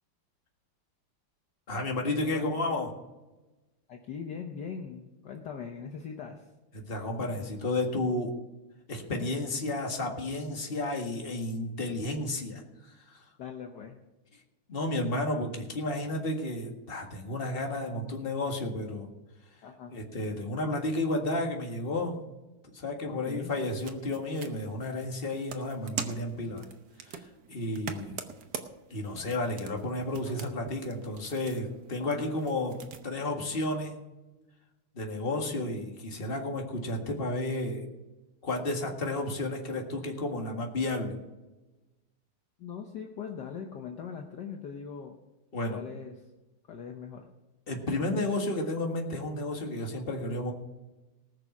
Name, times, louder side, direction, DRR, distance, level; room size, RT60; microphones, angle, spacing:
voice 1, 1.7-2.9 6.7-8.3 8.9-12.6 13.1-13.2 14.7-19.1 19.9-22.2 22.7-26.7 27.1-28.2 28.9-32.8 33.0-34.0 34.9-37.9 38.4-41.1 45.5-45.8 47.7-50.5, left 2 dB, 25° left, 2 dB, 1.9 m, -32 dB
voice 2, 2.3-2.8 3.9-6.5 13.4-14.0 19.6-19.9 23.1-23.5 30.3-30.4 32.0-32.3 42.6-45.2 45.7-46.2 46.7-47.3, left 6 dB, 60° left, 3 dB, 1.5 m, -41 dB
sound 1, 23.4-33.0, right 7 dB, 55° right, 1.4 m, -44 dB
19.5 x 6.8 x 6.0 m, 1.1 s
omnidirectional pair, 2.4 m